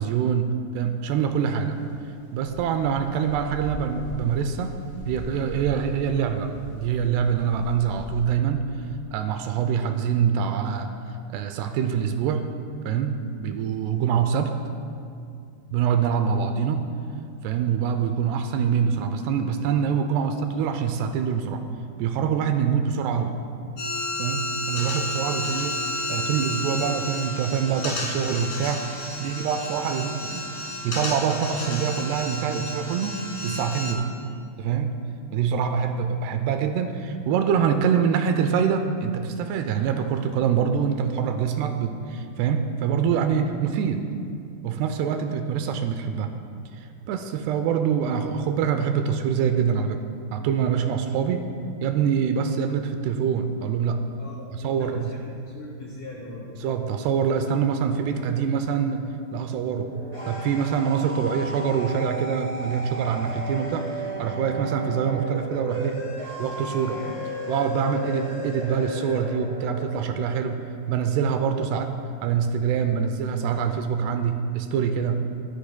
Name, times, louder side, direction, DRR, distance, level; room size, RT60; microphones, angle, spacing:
voice 1, 0.0-1.8 2.3-4.8 5.1-8.7 9.1-10.9 11.3-12.4 12.9-14.6 15.7-16.9 17.4-21.6 22.0-23.4 24.2-25.8 26.1-28.8 29.2-30.5 30.8-34.1 34.6-34.9 35.3-44.1 44.6-46.3 46.7-50.0 50.3-51.5 51.8-54.0 54.5-55.1 56.6-63.9 64.2-66.0 66.4-67.0 67.5-71.9 72.2-75.3, right 7 dB, 80° right, 7 dB, 2.5 m, -25 dB
sound 1, 1.3-8.2, left 1 dB, 55° right, 4.5 m, -40 dB
sound 2, 23.8-33.9, left 1 dB, 55° left, 1.9 m, -31 dB
voice 2, 54.2-56.6, left 2 dB, 80° left, -4 dB, 1.8 m, -40 dB
sound 3, 59.8-70.2, equal, 15° right, 2.0 m, -34 dB
22.5 x 9.7 x 2.2 m, 2.4 s
omnidirectional pair, 5.0 m